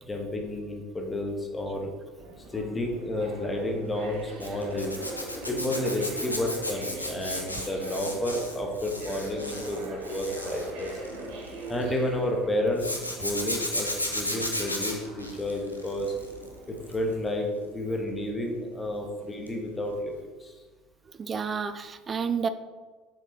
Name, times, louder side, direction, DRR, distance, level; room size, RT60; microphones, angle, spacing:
voice 1, 0.0-1.9 2.5-4.9 5.5-10.9 11.7-12.9 13.2-16.1 16.7-20.5, left 1 dB, 20° left, 1 dB, 1.7 m, -31 dB
sound 1, 2.2-17.2, right 2 dB, 60° right, 1.6 m, -42 dB
Zipper (clothing), 4.4-11.8 12.8-16.4 16.8-17.1 19.5-19.6 19.9-20.0, left 1 dB, 90° left, 0.9 m, -34 dB
voice 2, 21.2-22.5, right 6 dB, 30° right, 11 dB, 0.5 m, -30 dB
7.8 x 6.5 x 4.0 m, 1.3 s
figure-of-eight pair, 65°, 0 cm